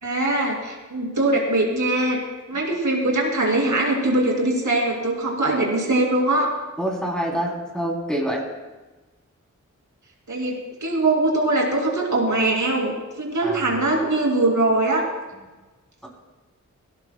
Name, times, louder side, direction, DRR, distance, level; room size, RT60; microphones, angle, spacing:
voice 1, 0.0-2.2 2.5-6.5 10.3-15.1, right 2 dB, 70° right, -1 dB, 2.6 m, -22 dB
voice 2, 6.8-8.4 13.4-13.9 16.0-16.1, right 1 dB, ahead, -2 dB, 3.2 m, -26 dB
18.5 x 16.0 x 2.2 m, 1.2 s
wide cardioid pair, 70°, 31 cm